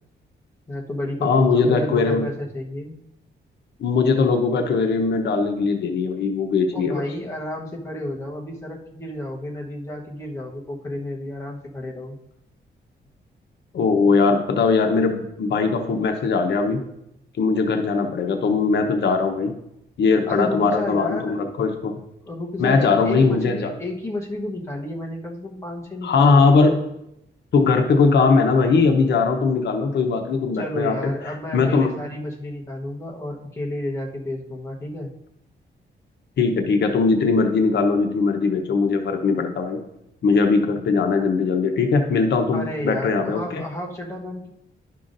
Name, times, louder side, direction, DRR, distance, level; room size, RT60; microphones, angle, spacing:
voice 1, 0.7-3.0 6.7-12.2 20.3-21.4 22.2-26.9 30.5-35.1 42.5-44.5, left 1 dB, 15° left, -2 dB, 1.0 m, -31 dB
voice 2, 1.2-2.3 3.8-7.0 13.7-16.8 17.4-19.5 20.0-22.0 22.6-23.7 26.0-26.7 27.5-31.0 31.5-31.9 36.4-39.8 40.2-43.6, left 4 dB, 70° left, 4 dB, 0.8 m, -20 dB
11.5 x 5.7 x 2.6 m, 0.82 s
wide cardioid pair, 175°, 19 cm